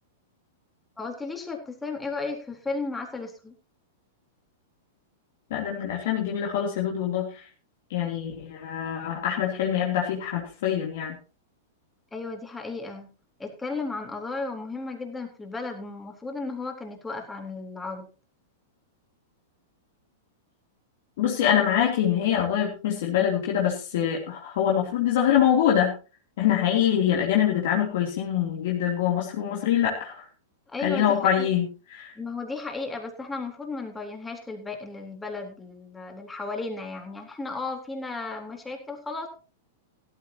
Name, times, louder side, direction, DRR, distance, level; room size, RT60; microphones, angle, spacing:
voice 1, 1.0-3.5 12.1-13.1 13.4-18.1 30.7-31.5 32.2-39.3, left 3 dB, 10° left, 2 dB, 3.9 m, -34 dB
voice 2, 5.5-7.4 7.9-11.2 21.2-26.0 26.4-30.3 30.8-32.1, left 9 dB, 55° left, -2 dB, 3.2 m, -24 dB
16.5 x 14.0 x 2.9 m, 0.35 s
figure-of-eight pair, 100°, 0 cm